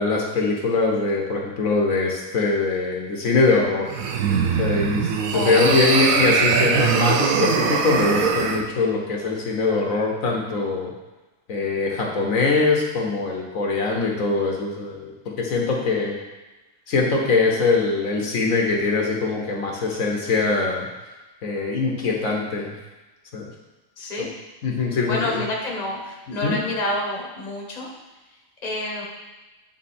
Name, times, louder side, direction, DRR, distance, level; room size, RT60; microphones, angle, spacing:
voice 1, 0.0-3.9 4.6-10.9 11.5-16.2 16.9-20.9 21.4-22.7 23.3-23.5 24.2-24.3 24.6-25.4 26.4-26.6, left 3 dB, 75° left, 0 dB, 1.4 m, -22 dB
sound 1, 3.9-8.6, right 6 dB, 75° right, 1.1 m, -21 dB
voice 2, 5.3-6.0 24.0-24.3 25.0-27.9 28.6-29.1, left 1 dB, 30° left, -2 dB, 1.2 m, -28 dB
8.9 x 3.9 x 4.3 m, 1.1 s
omnidirectional pair, 1.4 m